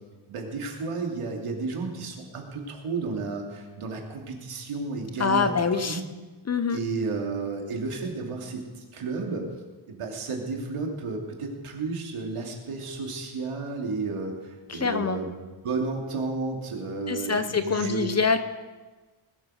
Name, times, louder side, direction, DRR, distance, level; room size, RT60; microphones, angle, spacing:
voice 1, 0.3-6.0 6.7-9.5 9.9-18.1, right 3 dB, 85° right, 1 dB, 2.8 m, -32 dB
voice 2, 5.2-6.0 6.5-6.8 14.7-15.2 17.1-18.4, left 5 dB, 30° left, 10 dB, 0.7 m, -25 dB
19.5 x 8.8 x 6.4 m, 1.3 s
wide cardioid pair, 175°, 50 cm